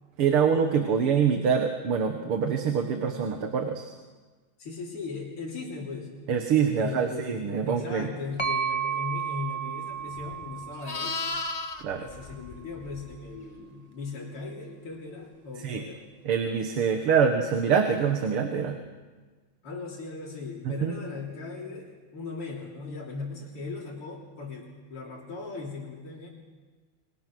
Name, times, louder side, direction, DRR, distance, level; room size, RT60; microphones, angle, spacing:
voice 1, 0.2-3.9 6.3-8.1 11.8-12.1 15.6-15.8 16.2-18.8 20.7-21.0, right 7 dB, 80° right, 5 dB, 2.4 m, -25 dB
voice 2, 4.6-6.1 6.8-7.4 7.7-11.3 12.0-16.1 17.1-17.3 19.6-26.3, left 4 dB, 90° left, -3 dB, 4.4 m, -38 dB
sound 1, 8.4-12.1, right 7 dB, 15° left, 1.5 m, -33 dB
Livestock farm animals working animals, 10.1-13.4 17.8-18.0, left 3 dB, 50° left, 0.4 m, -36 dB
27.0 x 23.0 x 6.3 m, 1.3 s
omnidirectional pair, 2.4 m